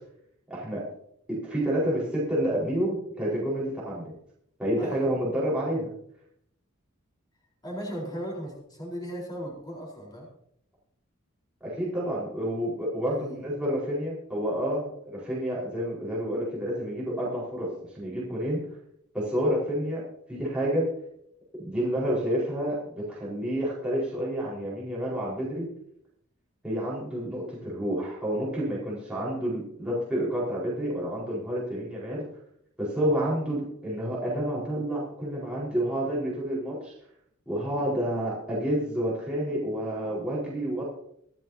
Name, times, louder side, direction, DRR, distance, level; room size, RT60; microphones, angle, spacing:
voice 1, 0.5-0.9 1.3-4.1 4.6-5.9 11.6-18.6 19.1-20.0 20.3-20.9 21.6-25.7 26.6-32.2 32.8-36.9 37.5-40.8, equal, 5° right, -8 dB, 4.7 m, -29 dB
voice 2, 4.8-5.1 7.6-10.3 13.1-13.4, equal, 20° left, -4 dB, 4.2 m, -37 dB
25.5 x 9.0 x 2.8 m, 0.71 s
head